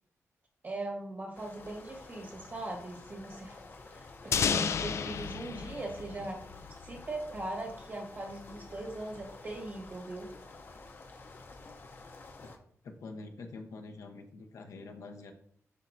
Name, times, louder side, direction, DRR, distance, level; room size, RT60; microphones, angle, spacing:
voice 1, 0.6-3.6 3.9-6.4 6.8-10.3, right 2 dB, 40° right, -1 dB, 1.4 m, -40 dB
sound 1, 1.3-12.6, left 3 dB, 40° left, 0.7 m, -50 dB
sound 2, 4.3-7.1, left 7 dB, 60° left, 0.3 m, -32 dB
voice 2, 12.8-15.3, left 3 dB, 85° left, 4 dB, 0.9 m, -46 dB
9.9 x 4.4 x 2.6 m, 0.63 s
wide cardioid pair, 165°, 5 cm